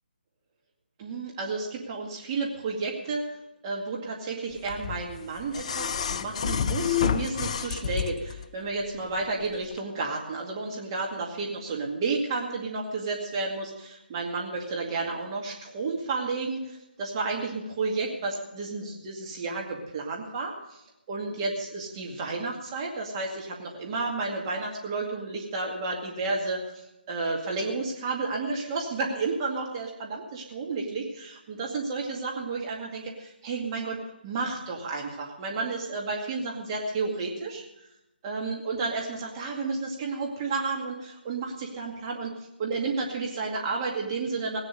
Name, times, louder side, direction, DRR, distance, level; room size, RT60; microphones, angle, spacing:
voice 1, 1.0-3.3 3.6-20.8 21.1-37.6 38.2-42.3 42.6-44.6, right 3 dB, 25° right, -1 dB, 2.2 m, -32 dB
sound 1, 4.7-8.4 9.7-9.8, left 8 dB, 35° left, 0.6 m, -29 dB
18.0 x 9.1 x 6.6 m, 0.90 s
figure-of-eight pair, 150°, 6 cm